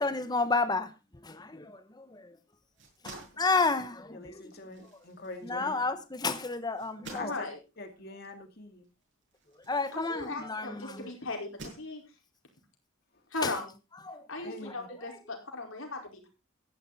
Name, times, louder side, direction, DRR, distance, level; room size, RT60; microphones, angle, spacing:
voice 1, 0.0-2.4 3.0-4.9 5.4-7.3 9.5-11.1 13.4-13.6 14.0-15.3, left 3 dB, 20° left, 1.0 m, -32 dB
sound 1, 2.6-10.7 11.3-12.4, right 2 dB, 55° right, 7.4 m, -51 dB
voice 2, 4.1-5.8 7.1-7.5 7.8-8.8 14.4-14.9, left 3 dB, 45° left, 2.4 m, -43 dB
voice 3, 7.2-7.6 9.9-12.0 13.3-13.7 14.3-16.3, left 2 dB, 65° left, 4.8 m, -37 dB
14.5 x 11.0 x 4.1 m
head